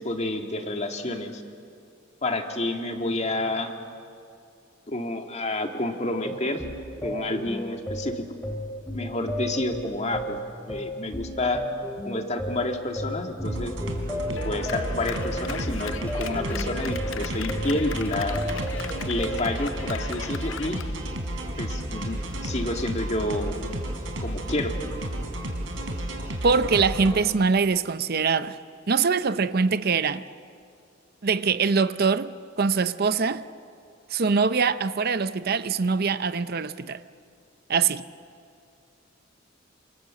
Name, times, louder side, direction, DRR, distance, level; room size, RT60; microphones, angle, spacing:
voice 1, 0.0-1.4 2.2-3.7 4.9-6.6 7.0-8.2 8.9-11.6 12.0-13.7 14.3-18.4 19.1-20.8 21.6-23.6 24.2-24.7, left 2 dB, 35° left, 2.1 m, -29 dB
sound 1, 6.2-19.4, equal, 10° left, 3.2 m, -34 dB
sound 2, 13.4-27.2, right 1 dB, 85° right, 3.6 m, -32 dB
Clapping, 14.4-20.9, left 7 dB, 75° left, 0.7 m, -39 dB
voice 2, 26.4-28.6 28.9-30.2 31.2-33.4 34.1-37.0 37.7-38.0, right 5 dB, 50° right, 0.6 m, -23 dB
28.0 x 27.0 x 7.6 m
head